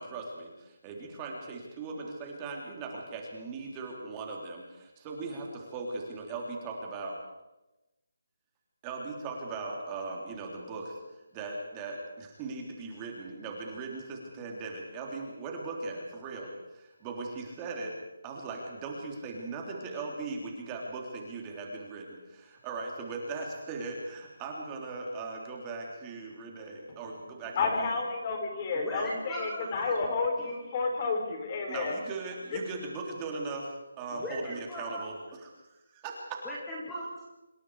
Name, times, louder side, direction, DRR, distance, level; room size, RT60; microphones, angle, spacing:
voice 1, 0.0-7.1 8.8-11.0 11.3-17.9 18.2-27.9 31.7-36.4, right 3 dB, 15° right, 0 dB, 3.5 m, -39 dB
voice 2, 27.6-31.9 32.5-32.6, left 4 dB, 25° left, 4 dB, 4.4 m, -30 dB
voice 3, 28.7-29.7 34.1-35.0 36.4-37.3, equal, 5° left, -5 dB, 2.8 m, -38 dB
26.5 x 24.5 x 4.9 m, 0.98 s
hypercardioid pair, 175°, 0 cm